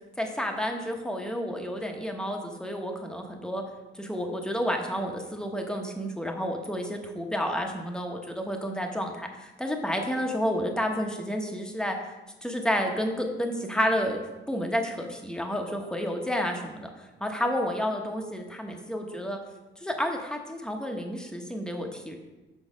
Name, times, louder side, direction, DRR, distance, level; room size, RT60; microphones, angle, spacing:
voice 1, 0.2-3.6 3.9-12.0 12.4-14.2 14.5-16.9 17.2-19.4 19.8-22.1, equal, 5° left, 2 dB, 1.1 m, -30 dB
6.4 x 4.8 x 5.1 m, 1.1 s
cardioid pair, 90°, 20 cm